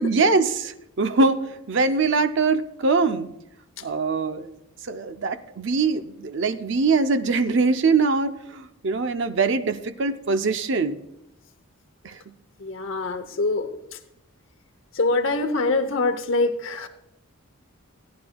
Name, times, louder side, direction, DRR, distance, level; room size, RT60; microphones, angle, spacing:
voice 1, 0.0-1.4 1.7-3.3 3.8-4.6 4.8-11.0 12.0-12.2, right 4 dB, 55° right, 9 dB, 0.6 m, -23 dB
voice 2, 12.6-14.0 14.9-16.9, left 3 dB, 60° left, 6 dB, 0.8 m, -24 dB
17.0 x 10.5 x 2.3 m, 0.81 s
head